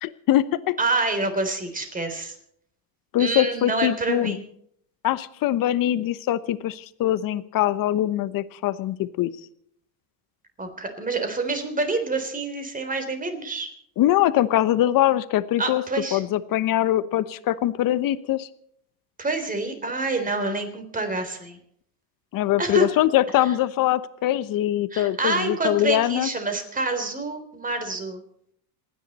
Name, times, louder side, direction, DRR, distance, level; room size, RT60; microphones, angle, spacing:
voice 1, 0.0-0.7 3.1-4.4 5.0-9.3 14.0-15.8 16.1-18.5 22.3-26.3, left 13 dB, 40° left, 14 dB, 1.1 m, -22 dB
voice 2, 0.8-2.3 3.2-4.4 10.6-13.7 15.6-16.2 19.2-21.6 22.6-22.9 24.9-28.2, right 3 dB, 15° right, 7 dB, 3.6 m, -27 dB
27.5 x 10.0 x 4.2 m, 0.67 s
supercardioid pair, 115°, 50 cm